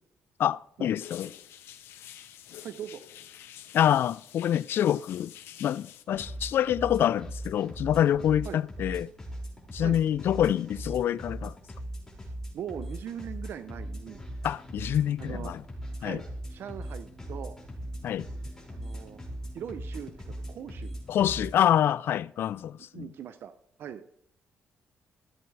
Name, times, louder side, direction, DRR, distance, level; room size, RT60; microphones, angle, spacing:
voice 1, 0.4-1.3 3.7-5.3 5.6-9.1 9.7-11.5 14.4-15.6 16.0-16.2 18.0-18.3 21.1-23.1, left 10 dB, 65° left, 0.3 m, -26 dB
sound 1, 1.0-6.0, left 11 dB, 85° left, 0.7 m, -48 dB
voice 2, 2.6-3.0 8.4-8.6 9.8-10.0 12.2-14.2 15.2-15.5 16.0-16.2 16.5-17.5 18.7-19.2 19.5-20.9 22.9-23.5 23.8-24.0, right 9 dB, 65° right, 0.6 m, -40 dB
sound 2, 6.1-21.6, right 1 dB, 15° left, 5.2 m, -40 dB
15.0 x 8.1 x 3.3 m
cardioid pair, 90°, 4 cm